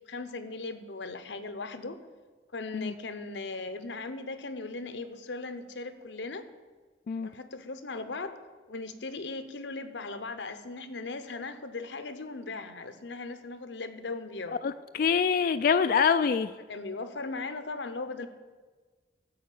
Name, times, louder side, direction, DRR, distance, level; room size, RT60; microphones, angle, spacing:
voice 1, 0.0-2.0 2.5-6.5 7.2-8.4 8.7-14.6 16.7-18.3, left 3 dB, 85° left, 10 dB, 0.9 m, -38 dB
voice 2, 14.6-16.5, left 6 dB, 50° left, 10 dB, 0.3 m, -25 dB
13.0 x 4.8 x 8.6 m, 1.4 s
head